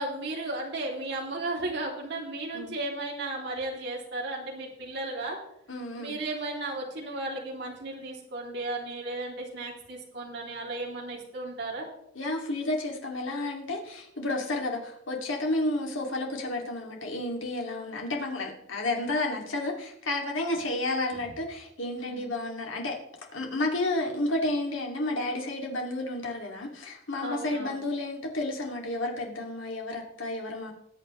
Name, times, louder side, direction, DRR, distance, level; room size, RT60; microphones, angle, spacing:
voice 1, 0.0-5.4 6.0-11.9 22.0-22.3 27.2-27.8, right 2 dB, 60° right, -2 dB, 3.0 m, -35 dB
voice 2, 5.7-6.2 12.1-23.0 23.3-30.7, left 2 dB, 80° left, 0 dB, 2.6 m, -31 dB
20.0 x 8.3 x 3.2 m, 0.76 s
head